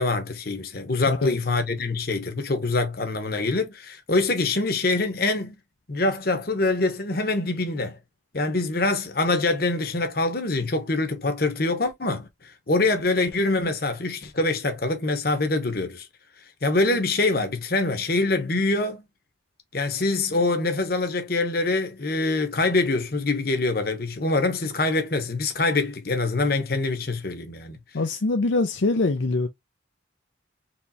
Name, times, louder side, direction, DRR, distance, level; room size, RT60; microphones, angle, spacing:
voice 1, 0.0-5.5 5.9-8.0 8.3-12.3 12.7-16.1 16.6-19.0 19.7-27.8, left 2 dB, 50° left, 1.0 m, -24 dB
voice 2, 27.9-29.5, left 3 dB, 75° left, 0.6 m, -23 dB
4.4 x 3.3 x 2.7 m
head